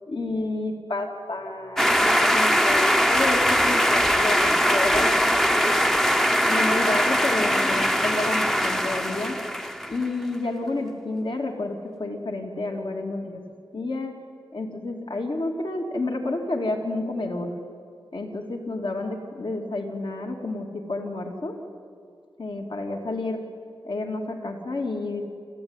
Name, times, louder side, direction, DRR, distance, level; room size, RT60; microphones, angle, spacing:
voice 1, 0.1-5.9 6.4-9.4 9.9-13.4 13.7-14.2 14.5-17.5 18.1-21.6 22.4-23.4 23.8-25.2, left 2 dB, 60° left, 2 dB, 2.3 m, -30 dB
sound 1, 1.8-10.1, equal, 5° left, 0.8 m, -21 dB
27.5 x 13.5 x 9.6 m, 2.5 s
wide cardioid pair, 60°, 9 cm